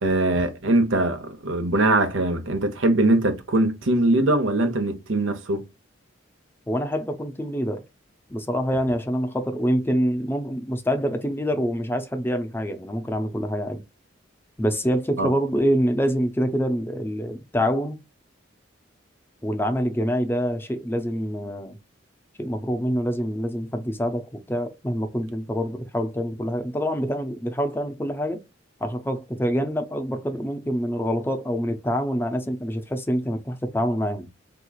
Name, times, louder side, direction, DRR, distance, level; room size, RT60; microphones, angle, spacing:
voice 1, 0.0-5.7 15.2-15.3, right 2 dB, 85° right, 0.9 m, -22 dB
voice 2, 6.7-7.8 8.3-13.8 14.6-18.0 19.4-21.8 22.4-28.4 28.8-34.3, equal, 10° left, 0.5 m, -26 dB
3.5 x 3.0 x 2.3 m
head